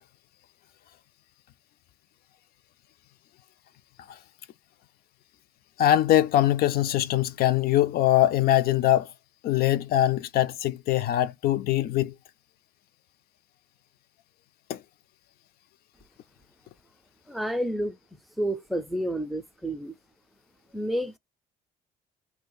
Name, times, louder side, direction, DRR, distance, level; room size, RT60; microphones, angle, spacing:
voice 1, 5.8-9.1 9.4-12.1 14.7-14.8, left 13 dB, 65° left, 0.4 m, -22 dB
voice 2, 17.3-18.0 18.4-19.9 20.7-21.2, right 1 dB, ahead, 0.5 m, -29 dB
2.7 x 2.4 x 3.8 m
cardioid pair, 110°, 17 cm